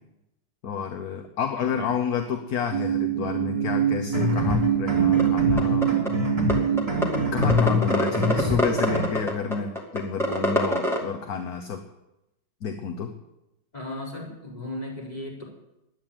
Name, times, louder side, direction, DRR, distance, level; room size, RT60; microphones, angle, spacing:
voice 1, 0.6-5.9 7.3-11.8 12.6-13.1, left 6 dB, 55° left, 6 dB, 1.4 m, -30 dB
voice 2, 1.6-1.9 8.2-8.6 13.7-15.4, left 1 dB, 20° left, -4 dB, 4.7 m, -35 dB
sound 1, 2.7-7.7, right 9 dB, 55° right, 1.2 m, -25 dB
sound 2, 4.0-9.1, left 2 dB, 20° right, 3.1 m, -26 dB
sound 3, 5.2-5.3 5.6-6.1 6.5-6.6 6.8-7.2 7.4-11.0, equal, ahead, 2.3 m, -23 dB
12.0 x 9.5 x 8.9 m, 0.90 s
omnidirectional pair, 2.0 m